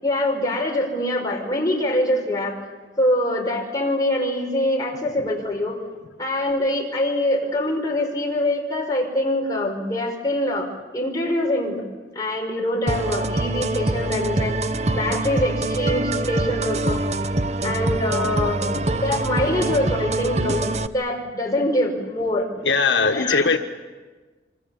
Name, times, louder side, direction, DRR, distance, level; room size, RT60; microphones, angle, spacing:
voice 1, 0.0-2.6 3.0-5.8 6.2-10.7 10.9-11.8 12.2-14.5 14.9-17.0 17.6-18.6 19.0-20.7 20.9-22.5 23.1-23.6, left 1 dB, 20° left, 0 dB, 5.3 m, -24 dB
sound 1, 12.9-20.9, right 2 dB, 40° right, 0.8 m, -24 dB
voice 2, 22.6-23.6, left 4 dB, 90° left, 5 dB, 1.5 m, -19 dB
27.5 x 25.5 x 7.2 m, 1.3 s
head